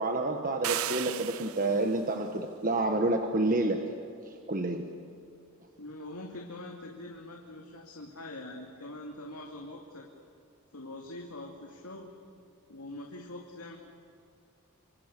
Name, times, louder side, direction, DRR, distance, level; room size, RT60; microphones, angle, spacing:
voice 1, 0.0-3.9 4.5-4.8, right 2 dB, 40° right, 4 dB, 1.4 m, -28 dB
sound 1, 0.6-1.9, right 11 dB, 70° right, 0.7 m, -35 dB
voice 2, 5.8-10.1 10.7-12.1 12.7-13.8, left 1 dB, 80° left, 0 dB, 2.5 m, -43 dB
27.0 x 26.0 x 6.8 m, 2.6 s
head